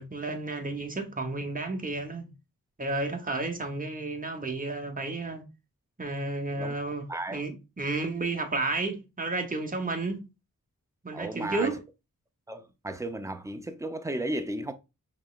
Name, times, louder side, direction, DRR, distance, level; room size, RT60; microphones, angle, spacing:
voice 1, 0.0-2.3 2.8-5.4 6.0-10.3 11.0-11.8, right 3 dB, 25° right, 1.0 m, -32 dB
voice 2, 7.1-7.4 11.1-11.8 12.5-14.7, right 1 dB, 10° right, 0.6 m, -34 dB
5.3 x 3.1 x 2.4 m
cardioid pair, 60°, 34 cm